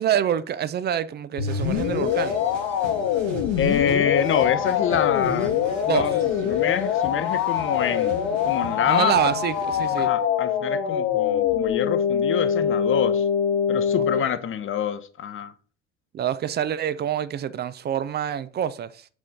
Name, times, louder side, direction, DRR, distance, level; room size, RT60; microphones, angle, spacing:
voice 1, 0.0-2.4 5.8-6.0 8.9-10.1 14.2-14.3 16.1-19.1, right 9 dB, 25° right, 0.4 m, -26 dB
sound 1, 1.4-14.2, left 8 dB, 55° left, 1.0 m, -24 dB
sound 2, 1.4-10.1, right 2 dB, 75° right, 1.6 m, -40 dB
voice 2, 3.6-5.5 5.9-8.1 8.4-9.1 10.0-13.2 13.7-15.5, left 8 dB, 35° left, 0.7 m, -26 dB
6.3 x 4.3 x 5.1 m
figure-of-eight pair, 60°, 38 cm